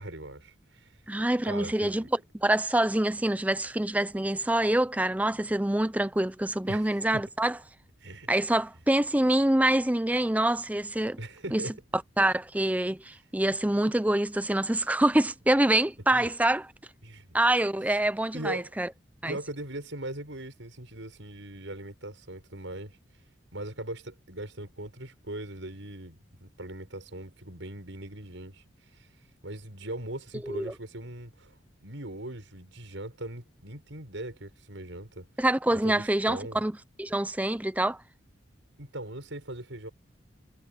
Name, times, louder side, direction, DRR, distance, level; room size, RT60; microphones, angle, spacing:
voice 1, 0.0-1.0 1.4-2.1 6.7-7.2 8.0-8.3 11.2-11.7 16.1-16.3 17.0-17.4 18.3-18.7 19.2-23.0 23.5-29.1 29.4-31.5 31.8-35.3 35.7-36.6 38.8-39.9, right 1 dB, 80° right, 6.0 m, -40 dB
voice 2, 1.1-2.0 2.3-7.6 8.3-11.2 11.5-11.6 12.2-16.6 17.3-18.9 19.2-19.4 30.4-30.7 35.4-36.7 37.0-38.0, right 1 dB, 10° right, 0.5 m, -25 dB
head